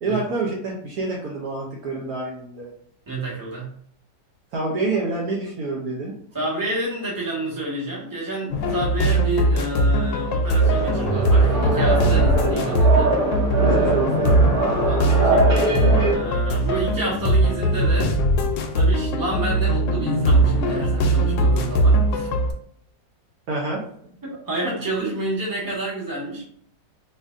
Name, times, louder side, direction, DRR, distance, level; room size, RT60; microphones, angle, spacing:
voice 1, 0.0-2.7 4.5-6.1 13.6-14.5 23.5-23.9, right 3 dB, 65° right, -2 dB, 1.0 m, -27 dB
voice 2, 3.1-3.7 6.3-13.1 14.8-15.8 16.0-18.2 18.7-22.3 24.3-26.4, right 2 dB, 15° right, -5 dB, 0.9 m, -29 dB
sound 1, 8.5-22.5, right 1 dB, 85° left, 1.3 m, -20 dB
sound 2, 10.6-16.1, right 2 dB, 40° right, 1.9 m, -23 dB
4.2 x 2.5 x 2.4 m, 0.64 s
omnidirectional pair, 1.9 m